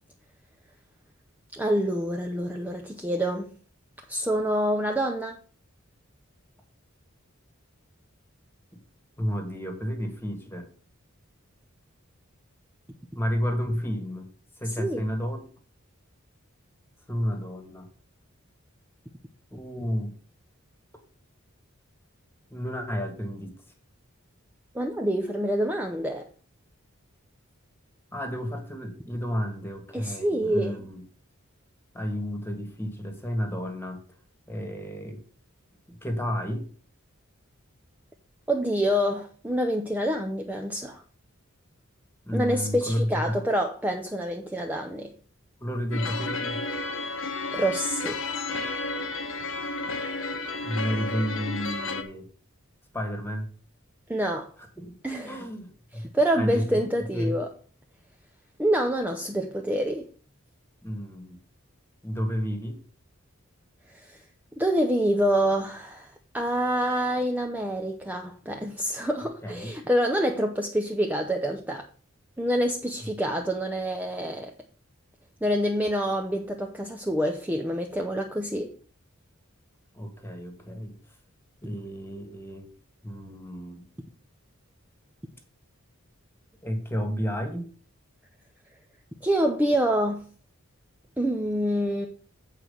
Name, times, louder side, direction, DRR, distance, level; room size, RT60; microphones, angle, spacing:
voice 1, 1.5-3.5 4.1-5.4 14.8-15.0 24.7-26.3 29.9-30.8 38.5-41.0 42.3-45.1 47.5-48.2 54.1-54.5 55.0-55.5 56.1-57.5 58.6-60.1 63.9-64.2 64.6-71.8 72.4-74.5 75.4-78.7 89.2-90.3 91.2-92.1, equal, 10° right, 0.6 m, -27 dB
voice 2, 9.2-10.7 13.1-14.3 14.6-15.4 17.1-17.9 19.5-20.1 22.5-23.5 28.1-31.0 31.9-34.0 34.5-35.2 35.9-36.6 42.2-43.4 45.6-46.6 50.6-52.3 52.9-53.5 54.8-55.0 55.2-56.8 57.1-57.4 60.8-61.4 62.0-62.8 69.4-69.7 73.3-73.4 79.9-80.9 81.6-82.7 83.0-83.8 86.6-87.6, equal, 10° left, 1.6 m, -31 dB
sound 1, 45.9-52.0, left 3 dB, 65° left, 1.0 m, -32 dB
8.3 x 4.5 x 6.7 m
head